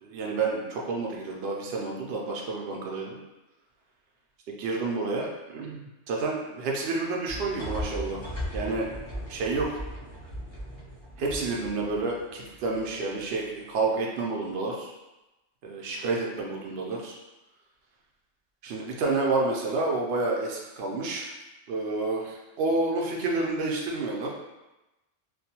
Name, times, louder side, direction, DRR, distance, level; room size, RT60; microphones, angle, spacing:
voice 1, 0.0-3.1 4.6-8.2 8.5-8.9 9.3-9.8 11.2-14.9 15.6-17.2 18.6-21.3 21.7-24.3, right 3 dB, 65° right, -1 dB, 0.7 m, -29 dB
sound 1, 7.3-13.2, equal, 35° left, 0.5 m, -38 dB
2.4 x 2.2 x 2.8 m, 1.0 s
omnidirectional pair, 1.3 m